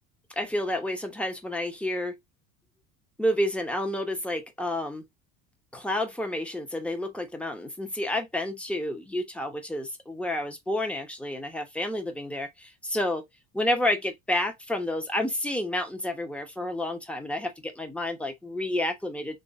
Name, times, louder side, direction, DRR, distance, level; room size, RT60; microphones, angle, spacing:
voice 1, 0.4-2.2 3.2-5.0 5.7-13.2 13.5-19.4, left 1 dB, 5° left, 0.9 m, -30 dB
3.1 x 2.7 x 4.1 m
supercardioid pair, 105°, 39 cm